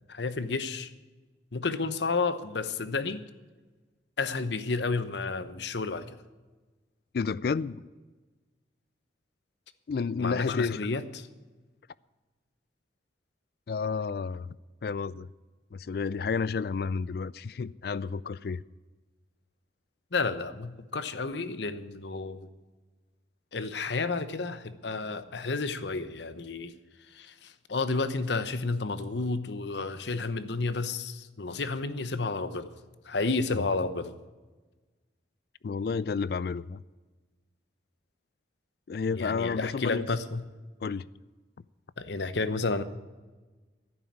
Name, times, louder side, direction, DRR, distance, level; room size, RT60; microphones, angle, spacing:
voice 1, 0.1-0.9 1.5-3.2 4.2-6.2 10.2-11.3 20.1-22.5 23.5-26.7 27.1-32.7 33.1-34.2 39.1-40.4 42.0-42.8, left 3 dB, 75° left, 0.9 m, -31 dB
voice 2, 7.1-7.9 9.9-10.8 13.7-14.6 14.8-15.3 15.7-18.6 33.5-33.6 35.6-36.8 38.9-40.1 40.8-41.1, left 5 dB, 55° left, 0.3 m, -31 dB
11.0 x 9.3 x 9.8 m
head